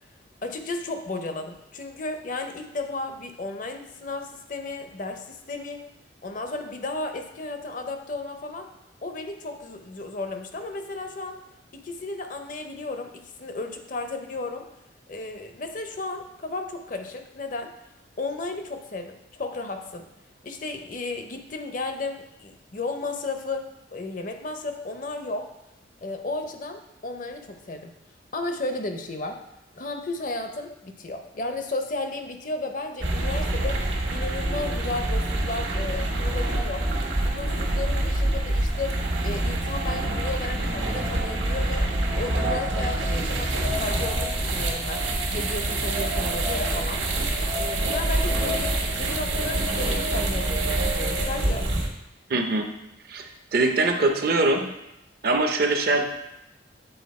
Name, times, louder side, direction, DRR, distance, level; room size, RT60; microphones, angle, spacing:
voice 1, 0.4-5.8 6.2-8.7 9.0-11.4 11.7-14.7 15.1-17.7 18.2-20.1 20.4-25.5 26.0-27.9 28.3-29.4 29.8-33.8 34.1-36.9 37.2-47.0 47.6-51.7, left 2 dB, 45° left, 6 dB, 0.6 m, -34 dB
sound 1, 33.0-51.9, right 1 dB, 85° right, 1.2 m, -26 dB
voice 2, 52.3-52.7 53.1-54.7 55.2-56.1, right 2 dB, 55° right, 5 dB, 0.7 m, -23 dB
7.9 x 4.0 x 4.2 m, 0.88 s
head